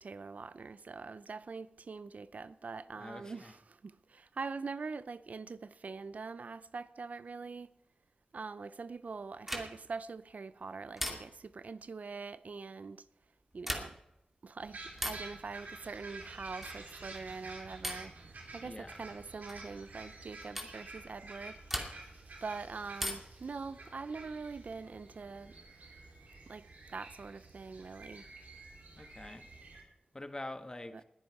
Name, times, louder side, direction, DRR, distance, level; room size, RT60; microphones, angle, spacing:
voice 1, 0.0-7.7 8.3-13.0 13.5-13.9 14.4-18.1 18.5-21.6 22.4-25.6 26.5-26.7 26.9-28.3 30.9-31.0, right 4 dB, 65° right, 0.5 m, -43 dB
voice 2, 3.0-3.5 18.6-19.0 29.0-29.4 30.1-31.0, left 2 dB, 25° left, 1.3 m, -45 dB
sound 1, 9.4-10.0 11.0-11.6 13.5-14.2 15.0-15.4 16.6-16.9 17.8-18.2 19.5-19.7 20.6-20.8 21.7-22.2 23.0-23.5 24.9-25.6, equal, 10° right, 2.4 m, -40 dB
sound 2, 14.6-29.8, right 3 dB, 85° right, 3.4 m, -50 dB
20.0 x 9.8 x 4.8 m
wide cardioid pair, 85°, 3 cm